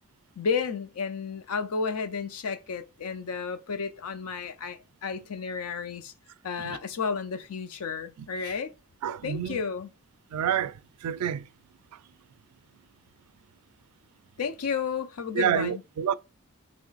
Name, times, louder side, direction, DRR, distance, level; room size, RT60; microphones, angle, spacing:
voice 1, 0.4-6.1 6.4-8.7 9.2-9.9 14.4-15.8, left 5 dB, 85° left, 0.6 m, -32 dB
voice 2, 9.0-9.6 10.3-11.5 15.3-16.1, right 9 dB, 85° right, 0.3 m, -28 dB
3.1 x 3.1 x 3.9 m
head